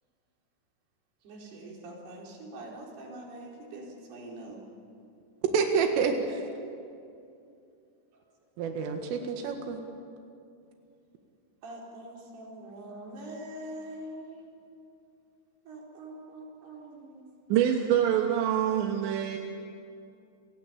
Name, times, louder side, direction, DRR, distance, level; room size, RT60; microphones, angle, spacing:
voice 1, 1.2-4.6 11.6-14.5 15.7-17.2, right 1 dB, 55° right, -1 dB, 6.0 m, -44 dB
voice 2, 5.5-6.4 8.6-9.8, right 5 dB, 90° right, 4 dB, 4.4 m, -28 dB
voice 3, 17.5-19.4, right 10 dB, 70° right, 2 dB, 3.5 m, -25 dB
29.5 x 21.0 x 8.6 m, 2.5 s
omnidirectional pair, 5.6 m